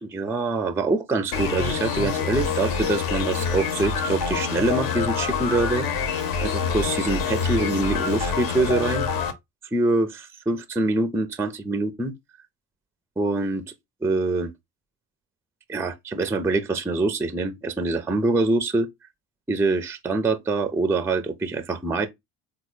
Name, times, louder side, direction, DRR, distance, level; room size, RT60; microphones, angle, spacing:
voice 1, 0.0-5.9 6.4-9.3 9.7-12.1 13.2-13.6 14.0-14.5 15.7-18.9 19.5-22.1, right 2 dB, 5° right, 0.4 m, -25 dB
sound 1, 1.3-9.3, left 6 dB, 65° left, 0.9 m, -26 dB
3.6 x 2.2 x 3.0 m
hypercardioid pair, 70°, 39 cm